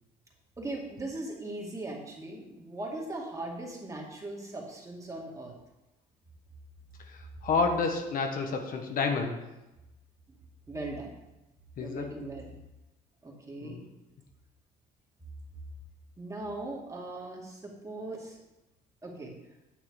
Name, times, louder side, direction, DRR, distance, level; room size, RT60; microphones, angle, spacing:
voice 1, 0.6-5.5 10.7-11.1 11.8-12.6 13.2-13.8 16.2-18.4 19.0-19.3, right 2 dB, 20° right, -1 dB, 2.3 m, -39 dB
voice 2, 7.1-9.4 11.8-12.1 13.6-13.9, left 4 dB, 55° left, 4 dB, 1.2 m, -30 dB
9.5 x 6.7 x 4.8 m, 0.98 s
cardioid pair, 110°, 17 cm